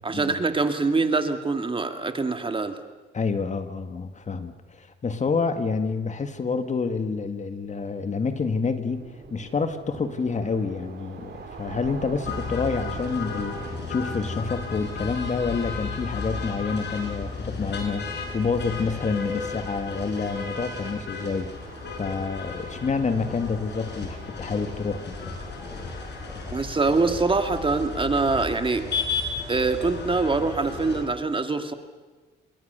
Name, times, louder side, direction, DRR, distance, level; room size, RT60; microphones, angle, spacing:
voice 1, 0.0-2.7 26.5-28.8 29.5-31.7, right 3 dB, 25° right, 7 dB, 2.0 m, -24 dB
voice 2, 3.1-9.0 9.3-21.5 22.0-25.2, left 4 dB, 35° left, 9 dB, 1.9 m, -28 dB
sound 1, 8.9-27.6, right 5 dB, 55° right, 4.4 m, -45 dB
sound 2, 12.2-31.1, left 4 dB, 60° left, 6.3 m, -34 dB
27.0 x 22.0 x 6.9 m, 1.3 s
cardioid pair, 90°, 20 cm